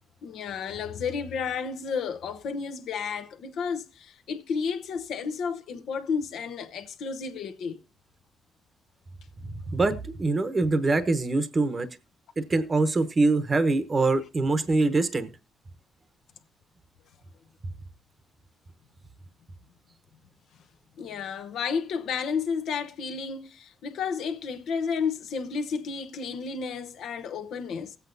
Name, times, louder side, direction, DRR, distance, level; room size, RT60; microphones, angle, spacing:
voice 1, 0.2-7.8 21.0-28.0, left 6 dB, 75° left, 0.9 m, -32 dB
voice 2, 9.4-11.9 12.4-15.3, right 3 dB, 30° right, 0.9 m, -24 dB
19.0 x 8.2 x 2.6 m
cardioid pair, 90°, 0 cm